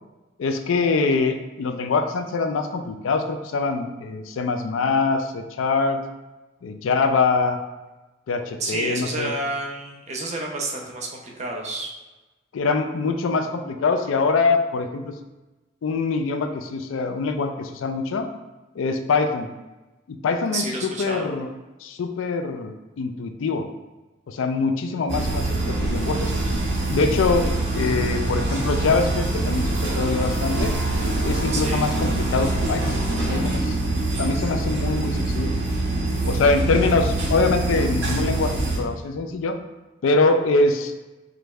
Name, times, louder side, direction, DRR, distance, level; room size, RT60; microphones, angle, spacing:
voice 1, 0.4-6.0 6.6-7.6 8.3-9.3 12.5-15.2 15.8-18.3 18.8-19.5 20.1-21.5 21.8-23.7 24.3-26.3 26.9-30.8 31.2-33.0 33.3-33.8 34.2-35.5 36.2-39.6 40.0-40.9, left 4 dB, 90° left, 7 dB, 0.4 m, -24 dB
voice 2, 8.6-11.9 20.5-21.3 31.5-31.9, right 2 dB, 35° right, -1 dB, 0.6 m, -29 dB
sound 1, 25.1-38.8, right 2 dB, 70° right, 1.0 m, -24 dB
5.0 x 2.3 x 3.1 m, 1.1 s
head